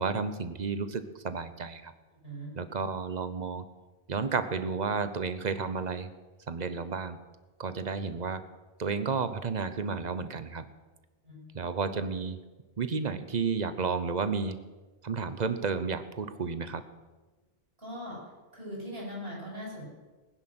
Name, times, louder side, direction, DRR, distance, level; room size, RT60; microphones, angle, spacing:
voice 1, 0.0-1.9 2.6-3.6 4.1-6.1 6.5-7.2 7.6-8.4 8.8-10.7 11.5-12.4 12.8-14.6 15.0-16.8, right 5 dB, 45° right, 11 dB, 1.0 m, -32 dB
voice 2, 2.2-2.5 11.2-11.4 17.8-18.2 18.5-19.8, equal, 60° right, -3 dB, 6.7 m, -40 dB
19.5 x 10.5 x 6.2 m, 1.2 s
omnidirectional pair, 1.1 m